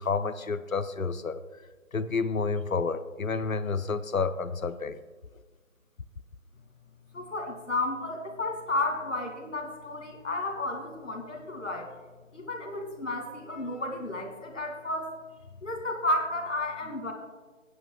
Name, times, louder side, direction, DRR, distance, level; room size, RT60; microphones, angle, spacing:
voice 1, 0.0-1.4 1.9-5.0, left 4 dB, 90° left, 13 dB, 0.7 m, -30 dB
voice 2, 7.1-11.9 12.3-15.1 15.6-17.1, left 2 dB, 65° left, 3 dB, 2.4 m, -32 dB
20.0 x 9.8 x 2.3 m, 1.3 s
figure-of-eight pair, 155°, 40 cm